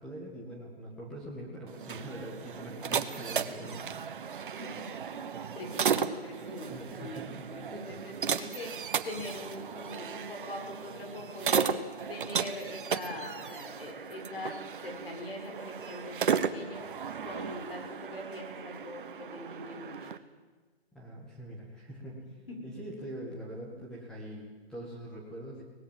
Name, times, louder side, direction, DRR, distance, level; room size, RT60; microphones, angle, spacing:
voice 1, 0.0-4.5 6.7-8.4 20.9-25.6, right 1 dB, ahead, -5 dB, 1.8 m, -44 dB
sound 1, 1.7-20.2, right 7 dB, 55° right, 1.2 m, -35 dB
voice 2, 5.1-6.7 7.0-7.2 7.5-20.1 22.5-22.6, left 2 dB, 65° left, 1 dB, 7.1 m, -42 dB
24.0 x 19.5 x 7.6 m, 1.3 s
hypercardioid pair, 160°, 32 cm